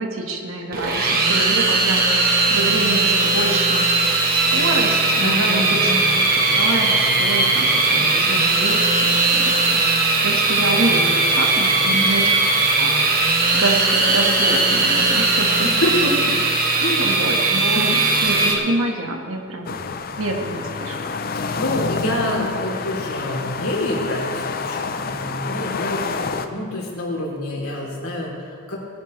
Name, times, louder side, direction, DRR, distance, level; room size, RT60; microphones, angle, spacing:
voice 1, 0.0-3.9 4.3-5.9 6.3-15.7 17.0-19.8 20.2-21.0, right 2 dB, 75° right, 2 dB, 1.6 m, -27 dB
sound 1, 0.7-18.5, right 3 dB, 40° right, 1.3 m, -18 dB
voice 2, 5.2-6.2 11.8-12.2 15.6-16.3 16.8-17.1 17.7-17.8 21.3-28.8, left 1 dB, 85° left, -3 dB, 3.2 m, -27 dB
sound 2, 19.6-26.5, left 4 dB, 40° left, 0.5 m, -28 dB
20.0 x 11.0 x 3.2 m, 2.3 s
head